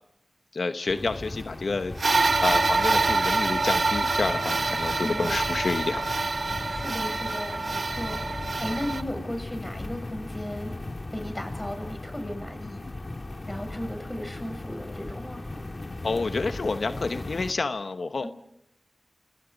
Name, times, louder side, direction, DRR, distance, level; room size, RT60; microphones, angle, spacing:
voice 1, 0.5-6.1 16.0-18.3, left 3 dB, 85° left, 8 dB, 1.0 m, -29 dB
sound 1, 0.9-17.5, left 2 dB, 45° left, 1.7 m, -37 dB
sound 2, 2.0-9.0, right 3 dB, 70° right, 1.1 m, -26 dB
voice 2, 4.8-5.4 6.7-10.7 11.1-12.9 13.5-15.4 18.2-18.3, left 1 dB, 15° left, 6 dB, 7.1 m, -36 dB
29.5 x 26.0 x 5.2 m, 0.80 s
wide cardioid pair, 55°, 0 cm